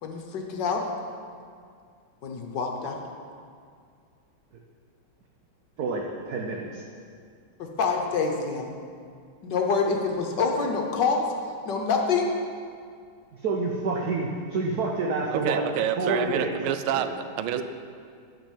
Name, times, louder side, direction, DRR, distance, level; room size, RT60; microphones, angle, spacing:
voice 1, 0.0-0.8 2.2-3.0 7.6-8.7 9.4-11.3 11.6-12.3, left 4 dB, 65° left, 2 dB, 1.5 m, -26 dB
voice 2, 5.8-6.8 13.4-15.6 16.0-16.6 17.0-17.1 17.5-17.6, right 3 dB, 60° right, 0 dB, 1.1 m, -28 dB
voice 3, 15.3-17.1 17.4-17.6, right 10 dB, 85° right, 10 dB, 1.5 m, -28 dB
10.5 x 5.3 x 7.3 m, 2.2 s
omnidirectional pair, 2.3 m